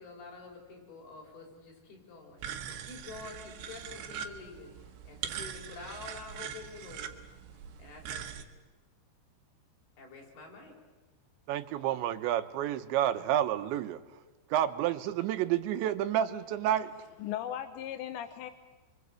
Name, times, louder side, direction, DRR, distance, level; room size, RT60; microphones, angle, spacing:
voice 1, 0.0-2.4 2.8-7.2 7.8-8.5 10.0-10.8, left 4 dB, 60° left, 1 dB, 7.6 m, -48 dB
sound 1, 2.4-8.4, right 8 dB, 75° right, 3.6 m, -42 dB
voice 2, 11.5-14.0 14.5-16.9, right 11 dB, 90° right, 9 dB, 3.5 m, -29 dB
voice 3, 17.2-18.5, left 11 dB, 85° left, 9 dB, 3.3 m, -37 dB
29.0 x 24.0 x 8.3 m, 1.2 s
omnidirectional pair, 5.1 m